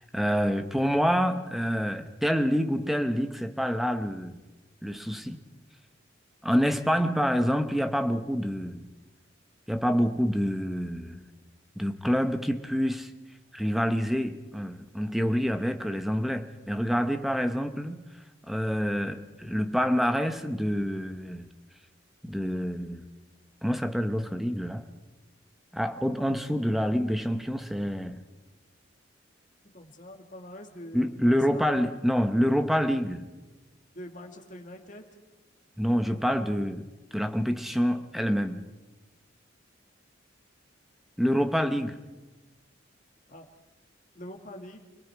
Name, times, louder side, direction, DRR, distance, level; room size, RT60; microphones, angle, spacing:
voice 1, 0.0-4.4 4.8-5.4 6.4-8.9 9.7-11.3 11.8-13.1 13.5-18.0 18.5-21.5 22.2-23.1 23.6-24.9 25.7-28.2 30.9-33.3 35.8-36.9 37.1-38.7 41.2-42.0, equal, ahead, 0.9 m, -27 dB
voice 2, 29.7-31.8 33.9-35.0 43.3-43.5 44.1-44.8, left 1 dB, 40° left, 2.3 m, -44 dB
29.5 x 19.5 x 4.7 m
head